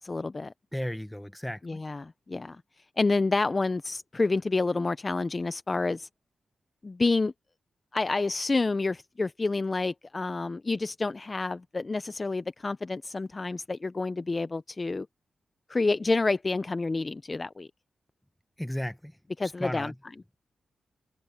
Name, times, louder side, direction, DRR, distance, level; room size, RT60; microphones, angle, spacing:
voice 1, 0.0-0.5 1.6-2.6 3.0-6.1 6.8-7.3 7.9-15.1 15.7-17.7 19.4-19.9, left 3 dB, 25° left, 0.4 m, -28 dB
voice 2, 0.7-1.8 18.6-19.1 19.4-20.0, equal, 5° left, 1.0 m, -34 dB
wide cardioid pair, 150°, 0 cm